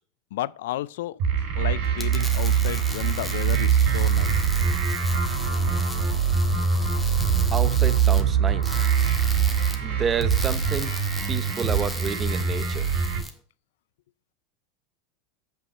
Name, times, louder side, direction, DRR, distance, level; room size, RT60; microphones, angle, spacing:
voice 1, 0.3-1.2 1.6-4.3, left 15 dB, 75° left, 0.3 m, -32 dB
sound 1, 1.2-13.2, right 7 dB, 60° right, 3.6 m, -23 dB
sound 2, 1.8-13.3, left 1 dB, 5° left, 1.5 m, -38 dB
voice 2, 7.5-8.8 9.8-10.9 11.3-12.9, right 6 dB, 30° right, 0.9 m, -30 dB
6.1 x 5.6 x 6.6 m
hypercardioid pair, 95°, 0 cm